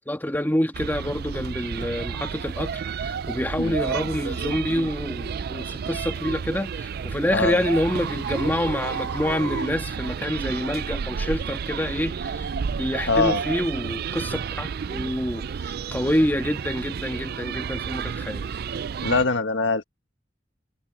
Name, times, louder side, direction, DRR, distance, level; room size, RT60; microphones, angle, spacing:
voice 1, 0.0-18.5, left 1 dB, 10° left, 1.6 m, -27 dB
sound 1, 0.7-19.2, right 6 dB, 55° right, 0.4 m, -31 dB
sound 2, 1.8-1.9 2.5-2.7 3.3-3.5 6.1-10.6, right 2 dB, 80° right, 2.1 m, -40 dB
voice 2, 7.3-7.7 13.1-13.4 19.0-19.8, left 3 dB, 80° left, 1.7 m, -23 dB
head